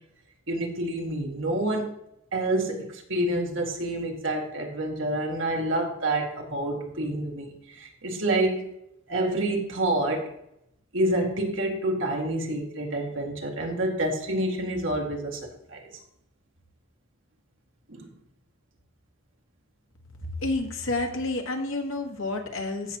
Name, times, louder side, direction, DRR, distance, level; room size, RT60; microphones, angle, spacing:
voice 1, 0.5-1.9 2.3-8.7 9.1-10.3 10.9-15.9 17.9-18.1, right 1 dB, 70° right, 1 dB, 1.9 m, -28 dB
voice 2, 20.4-23.0, left 2 dB, 80° left, 4 dB, 1.5 m, -29 dB
15.5 x 5.9 x 2.9 m, 0.78 s
head